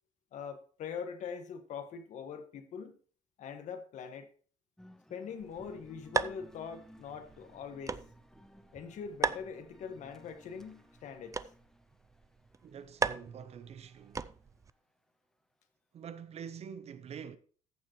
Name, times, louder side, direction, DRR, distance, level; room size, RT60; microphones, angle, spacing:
voice 1, 0.3-2.9 3.4-4.3 5.1-8.0 8.7-11.4, left 6 dB, 60° left, 1.7 m, -43 dB
sound 1, 4.8-14.2, equal, 5° left, 0.9 m, -59 dB
sound 2, 5.4-14.7, right 5 dB, 25° right, 0.5 m, -39 dB
voice 2, 12.6-14.3 15.9-17.4, right 7 dB, 50° right, 1.0 m, -46 dB
14.5 x 7.5 x 3.1 m
cardioid pair, 95°, 14 cm